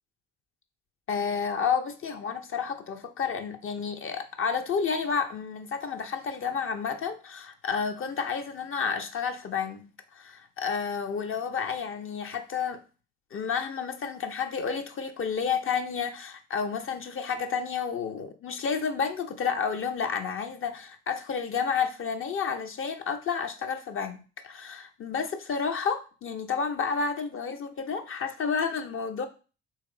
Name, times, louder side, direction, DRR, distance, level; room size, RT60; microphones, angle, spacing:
voice 1, 1.1-9.8 10.1-12.8 13.3-29.3, left 6 dB, 45° left, 0.6 m, -30 dB
3.0 x 2.9 x 3.8 m
hypercardioid pair, 50°, 29 cm